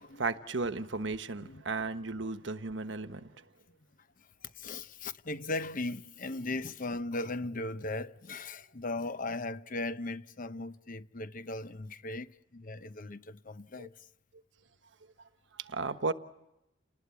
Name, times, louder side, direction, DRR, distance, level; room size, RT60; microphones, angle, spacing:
voice 1, 0.1-3.3 13.8-13.9 15.6-16.1, right 3 dB, 80° right, 1.2 m, -34 dB
voice 2, 4.4-13.9, left 2 dB, 45° left, 0.9 m, -38 dB
29.5 x 20.0 x 8.4 m
head